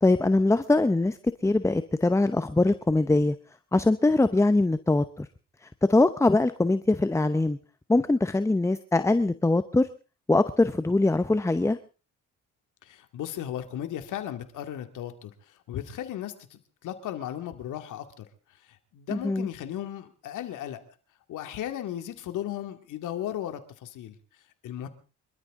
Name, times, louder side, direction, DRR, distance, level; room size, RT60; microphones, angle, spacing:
voice 1, 0.0-3.4 3.7-5.3 5.6-7.6 7.9-9.9 10.3-11.8 19.1-19.5, left 2 dB, 10° left, 12 dB, 0.8 m, -22 dB
voice 2, 12.9-15.3 15.7-18.2 18.9-20.8 21.3-24.1 24.6-24.9, left 11 dB, 80° left, 8 dB, 2.3 m, -35 dB
26.5 x 13.0 x 3.7 m, 0.35 s
cardioid pair, 90°, 30 cm